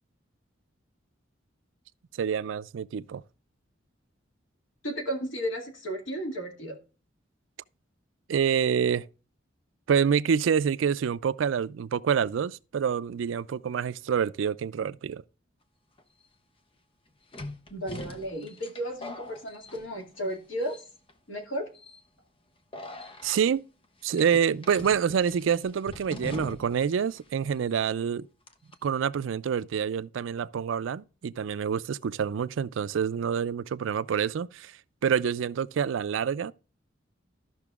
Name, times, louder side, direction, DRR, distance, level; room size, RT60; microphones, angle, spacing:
voice 1, 2.2-3.2 8.3-9.1 9.9-15.2 23.2-23.6 24.0-28.3 28.8-34.7 35.0-36.5, right 7 dB, 85° right, 0.4 m, -27 dB
voice 2, 4.8-6.8 17.7-20.8 21.3-21.7, equal, 90° left, 2.2 m, -34 dB
sound 1, 16.0-16.1 17.3-20.3 20.6-21.1 21.7-22.0 22.7-23.4 24.2-26.9 27.2-27.3 28.5-28.8, left 2 dB, 30° left, 0.7 m, -42 dB
14.0 x 5.8 x 2.4 m
head